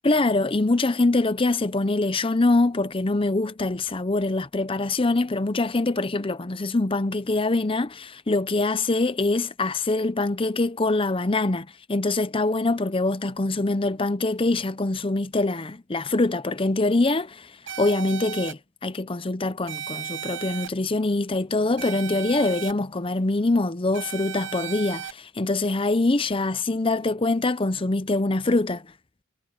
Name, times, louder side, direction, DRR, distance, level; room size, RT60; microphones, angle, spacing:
voice 1, 0.0-17.5 17.8-28.9, left 2 dB, 25° left, 0.7 m, -24 dB
sound 1, 17.7-18.5 19.7-20.7 21.8-22.7 23.9-25.1, right 9 dB, 60° right, 0.8 m, -35 dB
head